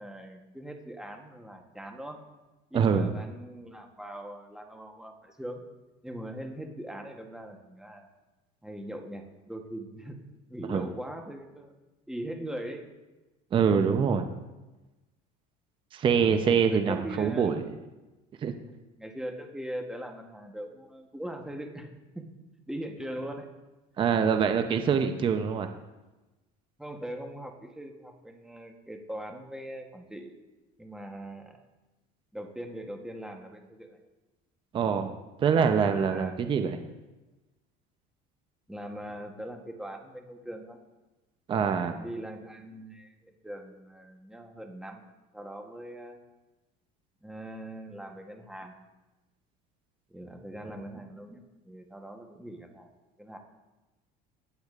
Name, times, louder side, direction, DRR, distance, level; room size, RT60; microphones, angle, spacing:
voice 1, 0.0-2.2 2.7-5.7 6.0-8.1 8.6-10.2 10.5-11.7 12.1-12.8 16.7-17.7 19.0-21.9 22.1-22.2 22.7-23.5 26.8-30.3 30.8-31.6 32.3-34.0 35.6-36.4 38.7-40.8 42.0-45.0 45.3-46.2 47.2-48.7 50.1-52.9 53.2-53.4, right 1 dB, 5° right, 3 dB, 1.0 m, -41 dB
voice 2, 2.7-3.1 10.7-10.8 13.5-14.3 15.9-17.6 18.4-18.5 24.0-25.7 34.7-35.1 35.4-36.8 41.5-41.9, right 6 dB, 30° right, 8 dB, 0.6 m, -24 dB
14.5 x 8.5 x 2.4 m, 1.1 s
cardioid pair, 140°, 18 cm